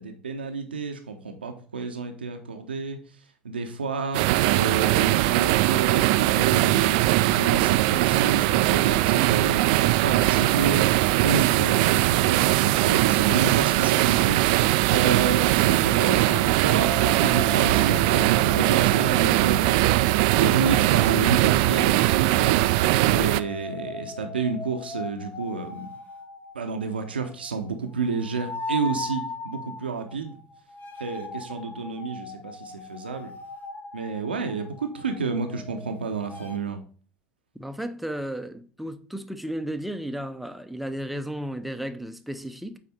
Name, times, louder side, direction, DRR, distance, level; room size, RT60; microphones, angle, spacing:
voice 1, 0.0-3.0 3.4-20.0 20.4-22.6 23.1-25.9 26.5-30.4 31.0-33.3 33.9-36.8, right 5 dB, 75° right, 0.8 m, -30 dB
sound 1, 4.1-23.4, right 17 dB, 55° right, 0.4 m, -21 dB
sound 2, 16.8-21.4 23.2-36.6, left 3 dB, 30° left, 0.9 m, -39 dB
voice 2, 37.6-42.8, right 1 dB, ahead, 0.7 m, -33 dB
8.6 x 4.2 x 4.1 m
figure-of-eight pair, 70°, 6 cm